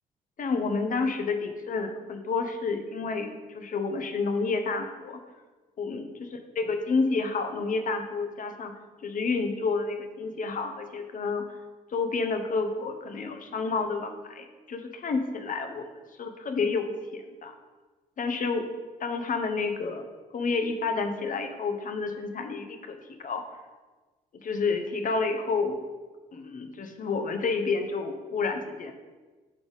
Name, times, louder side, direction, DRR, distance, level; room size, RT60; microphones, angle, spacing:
voice 1, 0.4-5.2 5.8-6.1 6.6-8.7 9.0-11.4 11.9-15.9 16.2-17.5 18.2-18.7 19.0-20.0 20.3-23.4 24.4-25.8 26.3-28.9, left 4 dB, 40° left, 6 dB, 1.0 m, -29 dB
8.4 x 4.0 x 5.1 m, 1.3 s
figure-of-eight pair, 45°, 20 cm